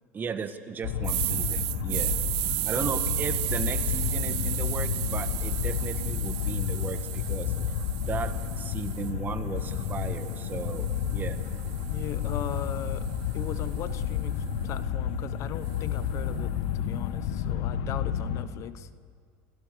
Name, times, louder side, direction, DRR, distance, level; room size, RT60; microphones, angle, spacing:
voice 1, 0.1-2.1 2.6-7.5 8.1-11.4, right 6 dB, 30° right, 9 dB, 1.6 m, -36 dB
sound 1, 0.8-18.4, left 8 dB, 75° left, 1.5 m, -31 dB
sound 2, 1.0-9.1 9.6-13.8, right 24 dB, 70° right, 0.5 m, -34 dB
voice 2, 11.9-18.9, left 11 dB, 50° left, 14 dB, 1.0 m, -38 dB
27.5 x 17.0 x 6.8 m, 2.2 s
supercardioid pair, 110°, 7 cm